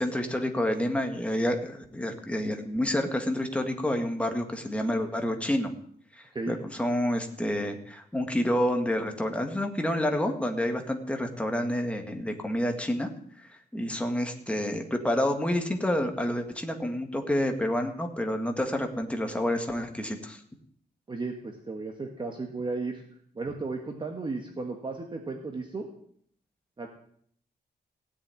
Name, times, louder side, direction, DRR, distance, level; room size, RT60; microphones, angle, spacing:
voice 1, 0.0-5.7 6.5-13.1 13.7-20.4, left 1 dB, 5° left, 4 dB, 1.7 m, -28 dB
voice 2, 21.1-23.0 23.3-25.9 26.8-26.9, right 3 dB, 25° right, 2 dB, 1.5 m, -34 dB
16.5 x 7.1 x 9.5 m, 0.64 s
wide cardioid pair, 170°, 17 cm